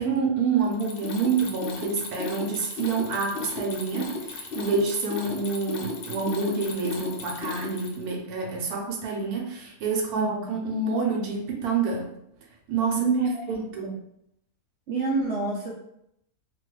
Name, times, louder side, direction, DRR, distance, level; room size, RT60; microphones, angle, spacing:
voice 1, 0.0-12.1 12.7-13.1 13.5-13.9, right 4 dB, 80° right, 0 dB, 1.2 m, -27 dB
Mechanisms, 0.6-8.1, left 4 dB, 75° left, 0.5 m, -35 dB
voice 2, 12.9-13.3 13.8-13.9 14.9-15.7, right 4 dB, 65° right, -2 dB, 0.7 m, -26 dB
2.8 x 2.3 x 3.1 m, 0.78 s
omnidirectional pair, 1.6 m